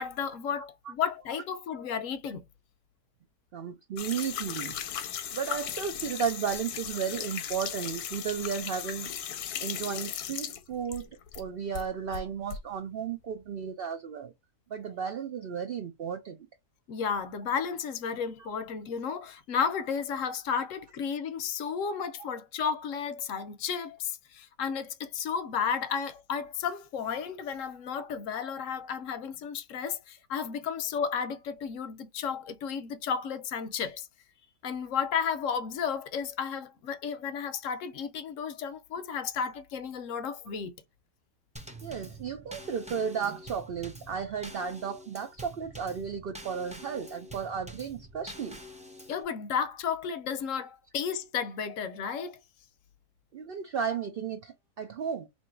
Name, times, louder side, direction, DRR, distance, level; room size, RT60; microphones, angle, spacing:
voice 1, 0.0-2.4 16.9-34.1 34.6-40.7 49.1-52.4, left 7 dB, 65° left, 0.9 m, -33 dB
voice 2, 3.5-9.3 9.6-11.1 11.3-14.3 14.7-16.4 41.8-48.6 53.3-55.3, right 7 dB, 80° right, 0.5 m, -34 dB
sound 1, 4.0-11.4 11.7-12.6, left 9 dB, 90° left, 1.2 m, -37 dB
Drum kit / Snare drum / Bass drum, 41.6-49.2, equal, 10° right, 0.3 m, -46 dB
2.9 x 2.6 x 4.3 m
omnidirectional pair, 1.6 m